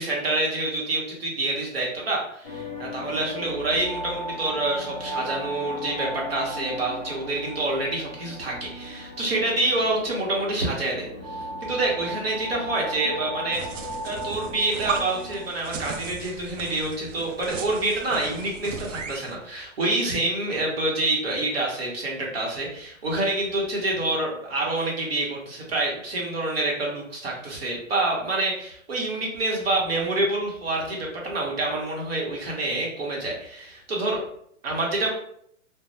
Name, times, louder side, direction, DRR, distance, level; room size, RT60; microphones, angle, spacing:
voice 1, 0.0-13.6 14.0-34.2 34.6-35.1, right 2 dB, 45° right, -2 dB, 0.9 m, -27 dB
sound 1, 2.4-15.5, equal, 25° left, 0.5 m, -36 dB
sound 2, 13.5-19.3, right 5 dB, 65° right, 0.5 m, -36 dB
2.5 x 2.1 x 3.0 m, 0.69 s
hypercardioid pair, 170°, 41 cm